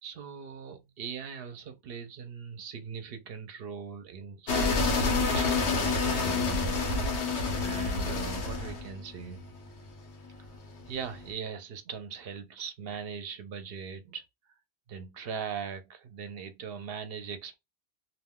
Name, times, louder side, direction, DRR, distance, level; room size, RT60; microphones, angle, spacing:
voice 1, 0.0-7.1 7.6-9.5 10.9-14.3 14.9-17.5, right 6 dB, 65° right, 0.7 m, -40 dB
sound 1, 4.5-11.2, left 3 dB, 90° left, 1.1 m, -28 dB
2.5 x 2.2 x 3.4 m
omnidirectional pair, 1.1 m